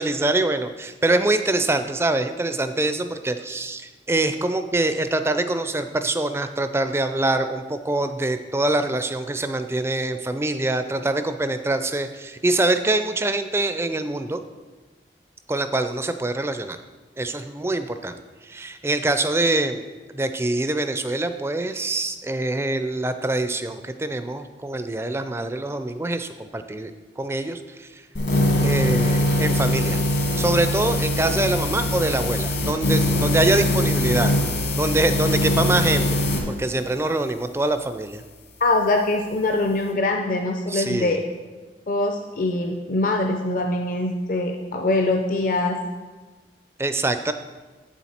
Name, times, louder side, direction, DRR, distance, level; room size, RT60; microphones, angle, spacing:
voice 1, 0.0-14.4 15.5-16.8 17.2-18.1 18.4-19.9 20.1-26.9 27.2-28.0 28.6-30.0 30.4-34.3 34.7-36.2 36.5-38.2 40.7-41.2 46.8-47.3, right 2 dB, 15° right, 9 dB, 0.4 m, -24 dB
sound 1, 28.2-36.4, left 1 dB, 70° left, 1.6 m, -22 dB
voice 2, 38.6-41.2 41.9-45.8, left 2 dB, 50° left, 3 dB, 0.5 m, -23 dB
8.2 x 7.1 x 4.3 m, 1.3 s
head